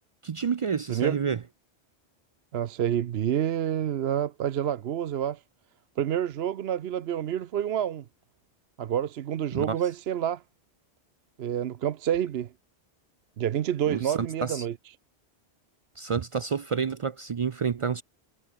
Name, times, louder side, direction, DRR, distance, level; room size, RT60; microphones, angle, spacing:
voice 1, 0.2-1.4 9.5-9.8 13.9-14.7 16.0-18.0, right 6 dB, 55° right, 0.3 m, -29 dB
voice 2, 2.5-5.4 6.0-8.0 8.8-10.4 11.4-12.5 13.4-14.7, right 10 dB, 70° right, 0.9 m, -28 dB
omnidirectional pair, 1.1 m